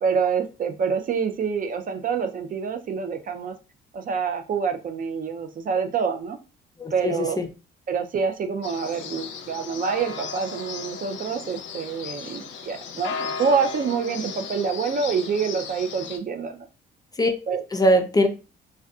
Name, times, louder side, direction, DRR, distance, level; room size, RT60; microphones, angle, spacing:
voice 1, 0.0-3.5 3.9-6.4 6.9-7.4 7.9-16.7 17.5-17.6, right 6 dB, 45° right, 7 dB, 0.4 m, -26 dB
voice 2, 6.8-7.5 17.2-17.3 17.7-18.3, equal, 20° left, 6 dB, 0.4 m, -21 dB
sound 1, 8.6-16.2, left 5 dB, 70° left, 0.5 m, -35 dB
2.5 x 2.2 x 2.3 m, 0.31 s
cardioid pair, 90°, 20 cm